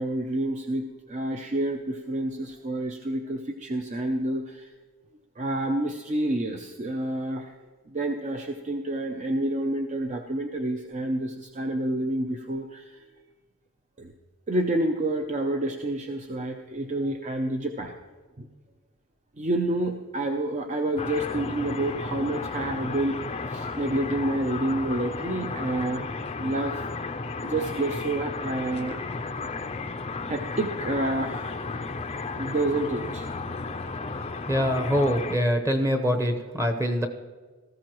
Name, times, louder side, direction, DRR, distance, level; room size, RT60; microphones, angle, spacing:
voice 1, 0.0-4.7 5.4-7.5 7.9-12.8 14.0-14.1 14.5-17.9 18.4-18.5 19.4-26.1 26.4-26.8 27.4-29.0 30.3-31.6 32.3-33.3 34.9-35.0, right 1 dB, 35° right, 4 dB, 0.6 m, -29 dB
sound 1, 21.0-35.4, left 3 dB, 30° left, 0.5 m, -34 dB
voice 2, 34.5-37.1, equal, 15° right, 5 dB, 1.0 m, -24 dB
18.0 x 14.5 x 3.1 m, 1.4 s
head